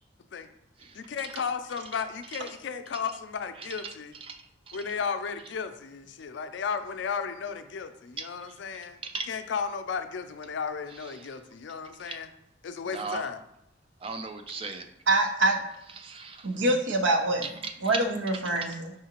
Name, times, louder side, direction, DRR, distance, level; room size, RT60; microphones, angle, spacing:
voice 1, 0.9-4.2 4.7-9.0 9.3-12.3 12.6-13.4, left 6 dB, 75° left, 8 dB, 0.4 m, -34 dB
voice 2, 12.9-13.3 14.0-14.9 16.0-16.5, right 4 dB, 30° right, 7 dB, 0.4 m, -37 dB
voice 3, 15.1-15.6 16.4-17.5 17.8-18.9, right 2 dB, 80° right, 3 dB, 0.7 m, -25 dB
4.8 x 3.7 x 2.9 m, 0.82 s
head